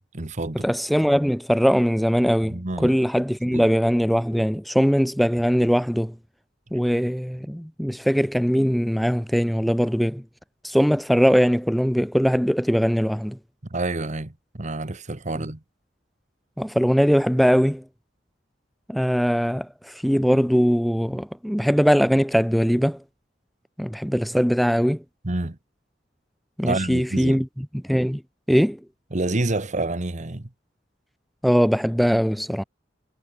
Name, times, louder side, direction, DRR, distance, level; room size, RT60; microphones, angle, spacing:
voice 1, 0.0-0.6 2.5-2.9 3.5-3.6 13.7-15.6 25.2-25.6 26.6-27.4 29.1-30.5, right 2 dB, 40° right, 1.3 m, -28 dB
voice 2, 0.5-6.1 6.7-10.2 10.6-13.4 16.6-17.8 18.9-23.0 23.8-25.0 26.6-28.2 28.5-28.8 31.4-32.6, equal, ahead, 0.5 m, -21 dB
head